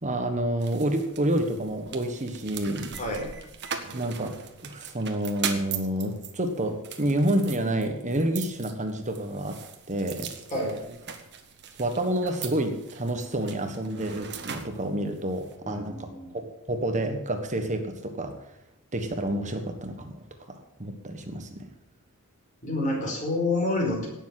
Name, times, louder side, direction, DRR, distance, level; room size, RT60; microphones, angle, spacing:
voice 1, 0.0-3.0 3.9-4.4 4.6-9.6 9.9-10.3 11.8-18.3 18.9-21.7, right 1 dB, 35° right, 6 dB, 1.4 m, -29 dB
sound 1, 0.6-15.5, right 7 dB, 50° right, 1.5 m, -40 dB
voice 2, 3.0-3.3 10.5-10.8 15.6-16.3 22.6-24.1, left 2 dB, 35° left, 0 dB, 5.1 m, -28 dB
17.5 x 7.3 x 7.7 m, 0.87 s
head